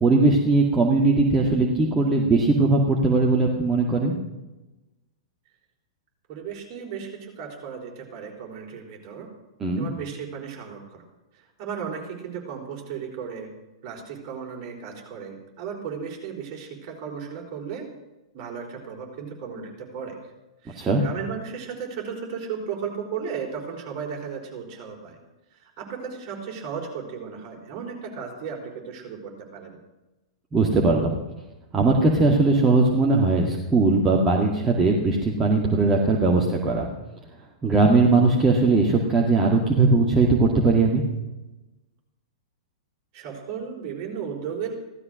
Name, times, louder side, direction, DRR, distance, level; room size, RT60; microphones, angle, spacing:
voice 1, 0.0-4.2 9.6-9.9 20.8-21.0 30.5-31.2 31.7-36.9 37.6-41.0, right 3 dB, 15° right, -1 dB, 2.0 m, -19 dB
voice 2, 6.3-9.3 9.8-11.0 11.3-13.5 13.8-17.8 18.3-20.1 20.6-25.2 25.5-29.8 43.1-44.7, right 6 dB, 35° right, 0 dB, 4.6 m, -35 dB
16.0 x 13.0 x 6.4 m, 1.0 s
figure-of-eight pair, 105°, 3 cm